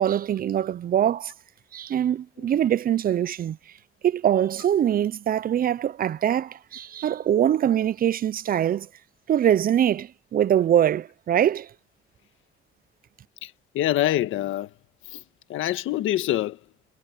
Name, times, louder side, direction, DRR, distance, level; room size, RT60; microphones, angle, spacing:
voice 1, 0.0-1.3 1.7-3.6 4.0-8.9 9.3-11.7, right 10 dB, 45° right, 0.5 m, -23 dB
voice 2, 13.4-14.7 15.1-15.2 15.5-16.6, left 13 dB, 85° left, 1.6 m, -26 dB
cardioid pair, 90°, 20 cm